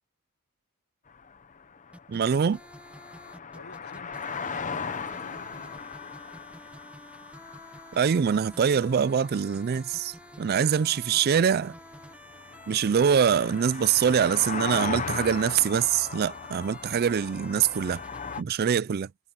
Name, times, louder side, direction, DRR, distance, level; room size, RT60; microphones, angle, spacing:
sound 1, 1.1-18.4, left 6 dB, 35° left, 0.8 m, -38 dB
sound 2, 1.9-18.4, right 1 dB, 5° right, 1.2 m, -50 dB
voice 1, 2.1-2.6 7.9-11.7 12.7-18.0 18.4-19.1, right 7 dB, 45° right, 0.4 m, -24 dB
voice 2, 3.5-6.0 10.8-11.5, left 4 dB, 80° left, 1.5 m, -51 dB
head